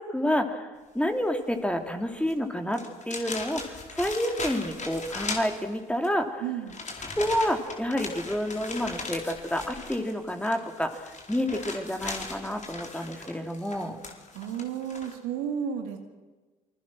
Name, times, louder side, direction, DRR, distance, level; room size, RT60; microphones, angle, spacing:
voice 1, 0.0-6.4 7.1-14.0, equal, 5° left, 5 dB, 3.3 m, -29 dB
sound 1, 2.2-2.3 2.7-6.1 6.7-15.1, left 3 dB, 40° left, 4.5 m, -38 dB
voice 2, 6.4-6.8 14.3-16.0, right 8 dB, 80° right, 4 dB, 2.5 m, -32 dB
28.0 x 21.0 x 6.3 m, 1.3 s
hypercardioid pair, 50°, 19 cm